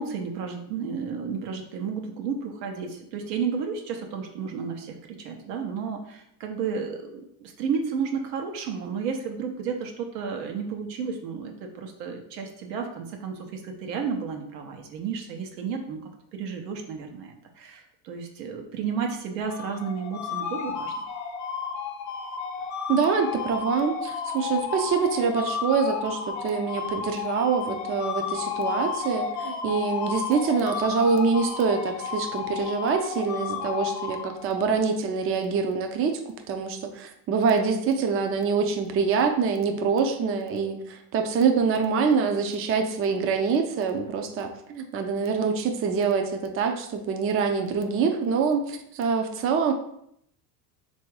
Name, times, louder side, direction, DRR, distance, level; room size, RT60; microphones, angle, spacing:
voice 1, 0.0-16.0 16.3-20.9, right 6 dB, 85° right, 3 dB, 0.9 m, -32 dB
sound 1, 19.4-34.7, left 6 dB, 40° left, 0.6 m, -32 dB
voice 2, 22.9-36.2 36.5-49.7, right 5 dB, 30° right, 5 dB, 0.5 m, -25 dB
3.4 x 2.7 x 4.6 m, 0.72 s
supercardioid pair, 110°, 48 cm